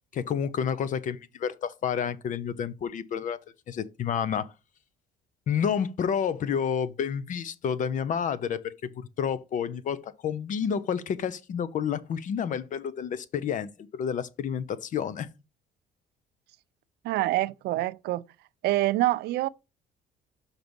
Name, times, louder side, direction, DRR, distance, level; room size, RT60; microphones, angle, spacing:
voice 1, 0.1-3.4 3.7-4.5 5.5-15.3, left 7 dB, 50° left, 0.7 m, -30 dB
voice 2, 17.0-18.2 18.6-19.5, right 17 dB, 75° right, 0.4 m, -26 dB
5.9 x 4.0 x 5.2 m
cardioid pair, 110°, 17 cm